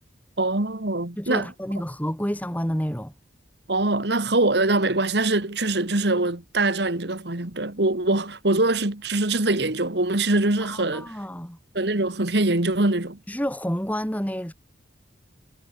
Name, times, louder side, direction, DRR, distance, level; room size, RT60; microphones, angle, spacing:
voice 1, 0.4-1.5 3.7-11.1 11.7-13.2, right 2 dB, 65° right, 1.9 m, -23 dB
voice 2, 1.2-3.1 10.6-11.6 13.3-14.5, equal, 10° left, 4.0 m, -29 dB
head